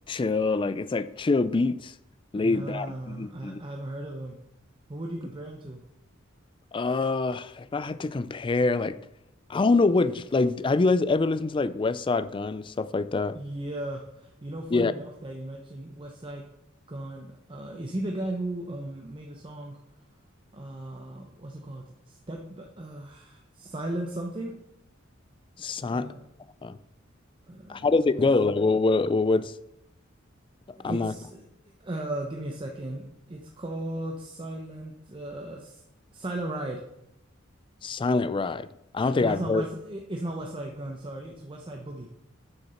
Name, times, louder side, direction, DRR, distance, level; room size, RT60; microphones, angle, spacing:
voice 1, 0.1-1.9 2.3-3.6 6.7-9.0 9.5-13.4 14.7-14.9 25.6-26.1 26.6-26.8 27.7-29.6 30.8-31.1 37.8-38.7 38.9-39.7, left 3 dB, 25° left, 0.3 m, -25 dB
voice 2, 2.4-4.4 4.9-5.8 13.3-16.4 16.9-19.8 20.5-24.5 25.9-26.2 27.5-28.3 30.8-31.4 31.8-35.8 36.1-36.8 39.0-42.1, right 1 dB, 25° right, 0.8 m, -36 dB
7.2 x 6.6 x 5.6 m
head